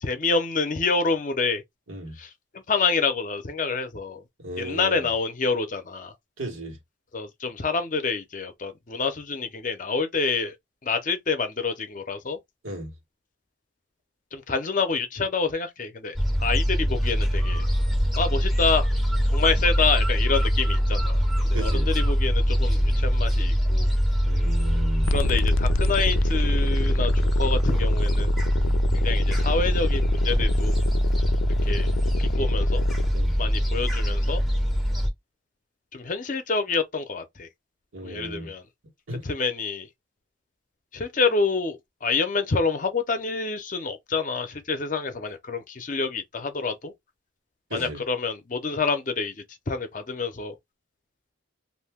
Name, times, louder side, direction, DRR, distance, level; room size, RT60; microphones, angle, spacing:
voice 1, 0.0-1.6 2.2-2.3 2.7-4.2 4.6-6.1 7.1-10.5 10.8-12.4 14.3-17.6 18.2-18.9 19.3-23.9 25.1-27.1 27.4-28.3 28.9-30.8 31.6-31.9 32.2-32.8 33.4-34.4 35.9-37.5 38.0-38.6 39.2-39.9 40.9-46.9 47.7-50.5, left 4 dB, 40° left, 0.6 m, -27 dB
voice 2, 4.4-5.1 6.4-6.8 12.6-12.9 21.5-21.9 24.2-25.1 28.6-28.8 33.1-33.3 37.9-38.5 39.1-39.2 47.7-48.0, right 1 dB, 90° right, 1.3 m, -35 dB
Gull seagull, 16.2-35.1, equal, ahead, 0.6 m, -23 dB
sound 1, 25.1-33.1, left 4 dB, 85° left, 0.3 m, -32 dB
2.5 x 2.2 x 3.4 m
head